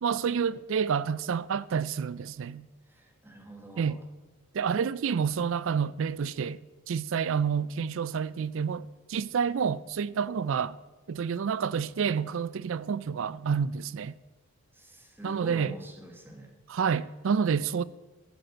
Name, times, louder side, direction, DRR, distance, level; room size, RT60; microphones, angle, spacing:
voice 1, 0.0-2.7 3.8-4.0 4.5-6.6 6.9-10.8 11.1-14.1 15.2-15.7 16.7-17.8, right 6 dB, 60° right, 0.4 m, -29 dB
voice 2, 2.8-4.0 14.7-16.5, right 1 dB, 10° right, 1.5 m, -45 dB
13.5 x 6.5 x 7.8 m
head